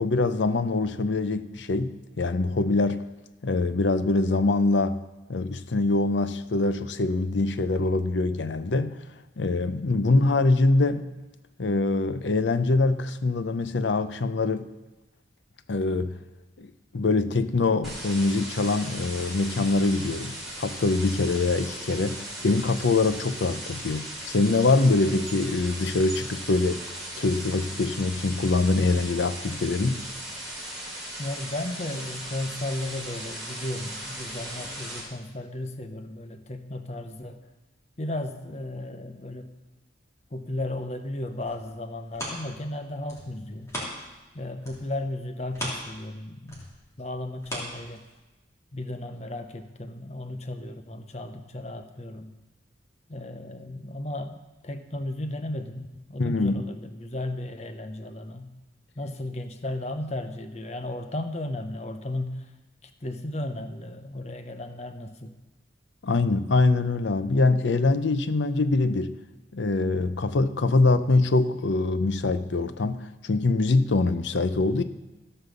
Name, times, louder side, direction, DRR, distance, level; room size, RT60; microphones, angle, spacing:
voice 1, 0.0-3.0 3.4-5.0 5.3-9.0 9.4-11.1 11.6-14.7 15.7-16.2 16.6-16.7 16.9-26.8 27.2-30.0 56.2-56.6 66.0-69.1 69.5-74.8, left 3 dB, 70° left, 0.6 m, -24 dB
sound 1, 17.8-35.0, right 1 dB, ahead, 3.2 m, -38 dB
voice 2, 31.2-37.4 38.0-39.5 40.3-43.7 44.3-46.6 47.0-48.0 48.7-52.4 53.1-54.4 54.6-58.5 59.0-62.5 62.8-65.4, left 1 dB, 35° left, 0.8 m, -35 dB
sound 2, 41.3-44.3 44.6-48.4 48.9-49.0, equal, 15° left, 3.2 m, -38 dB
15.5 x 5.6 x 6.8 m
head